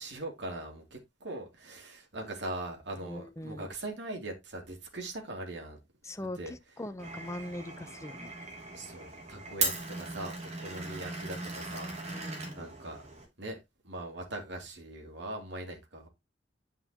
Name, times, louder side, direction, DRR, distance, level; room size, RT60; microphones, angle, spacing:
voice 1, 0.0-5.8 6.2-6.5 8.7-12.3 12.5-13.0 13.4-13.6 13.8-16.1, right 1 dB, 70° right, 2.7 m, -41 dB
voice 2, 3.0-3.7 6.0-8.3 10.7-11.1 12.1-12.7, left 1 dB, 15° left, 0.7 m, -42 dB
Glass, 7.0-13.2, right 3 dB, 35° right, 2.7 m, -38 dB
9.3 x 5.6 x 2.9 m
head